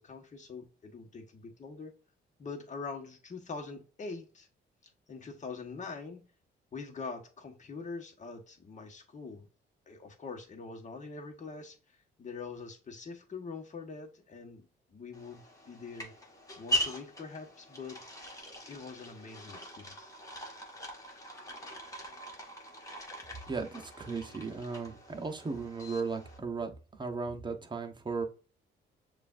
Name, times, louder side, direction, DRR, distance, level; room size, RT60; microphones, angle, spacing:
voice 1, 0.0-1.9 2.4-4.5 5.1-6.2 6.7-9.5 9.9-11.8 12.2-16.1 16.6-18.0 18.7-20.1, left 4 dB, 40° left, 1.2 m, -44 dB
sound 1, 15.1-26.4, equal, 15° left, 1.5 m, -41 dB
voice 2, 23.5-28.2, right 4 dB, 25° right, 0.9 m, -36 dB
6.7 x 2.5 x 2.5 m
cardioid pair, 90°, 20 cm